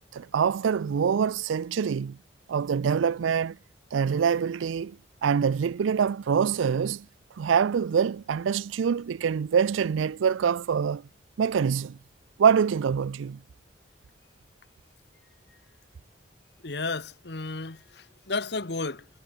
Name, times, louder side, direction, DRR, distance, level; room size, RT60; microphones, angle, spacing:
voice 1, 0.1-2.2 2.5-3.6 3.9-7.1 7.4-11.0 11.4-12.0 12.4-13.4, right 7 dB, 90° right, 0.4 m, -25 dB
voice 2, 16.6-19.1, left 3 dB, 60° left, 1.3 m, -33 dB
head